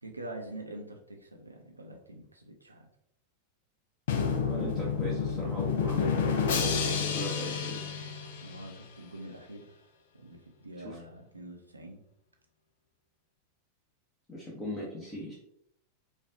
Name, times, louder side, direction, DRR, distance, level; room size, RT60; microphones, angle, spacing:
voice 1, 0.0-2.9 7.2-7.3 8.4-9.8 10.1-12.0, right 1 dB, 85° right, 2 dB, 0.6 m, -45 dB
Drum, 4.1-8.9, left 6 dB, 55° left, 0.5 m, -30 dB
voice 2, 4.4-6.7 7.0-7.8 10.8-11.0 14.3-15.3, equal, 15° left, -5 dB, 0.9 m, -39 dB
5.1 x 2.4 x 2.6 m, 0.75 s
figure-of-eight pair, 90°, 0 cm